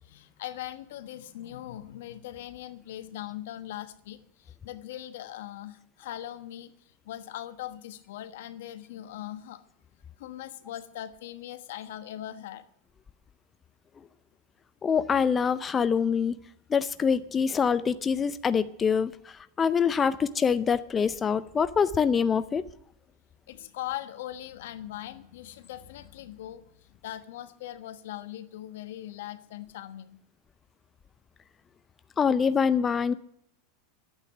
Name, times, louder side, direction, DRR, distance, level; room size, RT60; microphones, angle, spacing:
voice 1, 0.0-9.6 10.2-12.7 23.5-30.2, left 13 dB, 75° left, 11 dB, 1.2 m, -40 dB
voice 2, 14.8-16.4 16.7-22.6 32.2-33.1, left 6 dB, 20° left, 13 dB, 0.5 m, -25 dB
11.5 x 8.5 x 9.8 m, 0.74 s
supercardioid pair, 125°, 0 cm